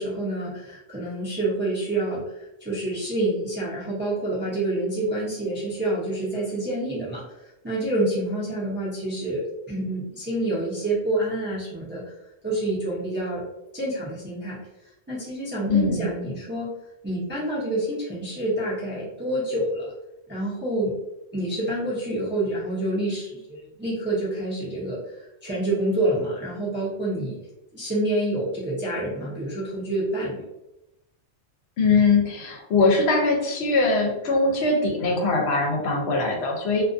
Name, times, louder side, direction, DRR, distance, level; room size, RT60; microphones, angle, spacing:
voice 1, 0.0-2.3 2.6-7.2 7.6-12.0 12.4-13.4 13.7-14.6 15.1-16.8 17.0-19.9 20.3-20.9 21.3-25.0 25.4-27.4 27.7-30.4, right 1 dB, 15° right, -7 dB, 0.4 m, -27 dB
voice 2, 15.7-16.1 31.8-36.8, left 3 dB, 70° left, 0 dB, 0.8 m, -21 dB
2.4 x 2.2 x 2.4 m, 0.91 s
omnidirectional pair, 1.2 m